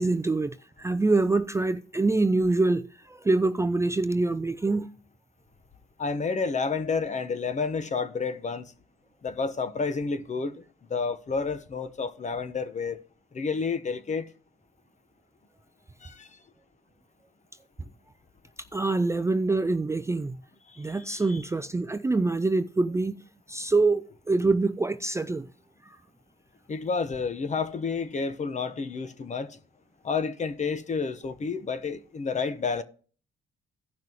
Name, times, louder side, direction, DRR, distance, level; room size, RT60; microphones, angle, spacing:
voice 1, 0.0-4.9 18.7-20.4 20.8-25.5, right 3 dB, 15° right, 0.5 m, -25 dB
voice 2, 6.0-8.7 9.2-10.6 10.9-13.0 13.3-14.3 16.0-16.3 20.7-21.4 26.7-29.6 30.0-32.8, left 5 dB, 35° left, 1.0 m, -30 dB
16.0 x 5.8 x 2.9 m
cardioid pair, 90°, 20 cm